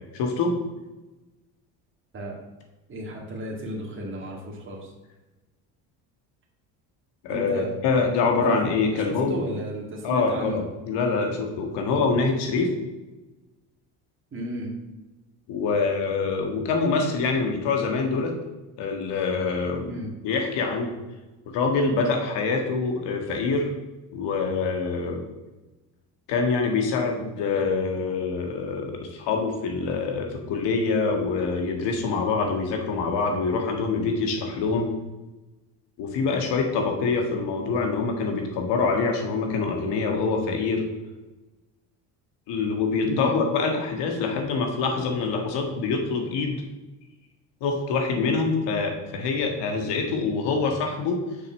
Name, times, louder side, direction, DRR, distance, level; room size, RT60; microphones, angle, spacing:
voice 1, 0.1-0.5 7.2-9.4 10.0-12.7 15.5-18.3 18.8-19.9 20.2-20.9 21.5-23.7 24.1-25.2 26.3-34.9 36.0-40.8 42.5-46.6 47.6-51.2, left 4 dB, 70° left, 3 dB, 1.7 m, -25 dB
voice 2, 2.9-4.9 7.3-7.7 8.4-8.6 8.9-10.6 14.3-14.7 19.9-20.1 43.1-43.4, right 1 dB, 30° right, -2 dB, 2.1 m, -33 dB
6.6 x 5.1 x 6.2 m, 1.1 s
supercardioid pair, 105°, 43 cm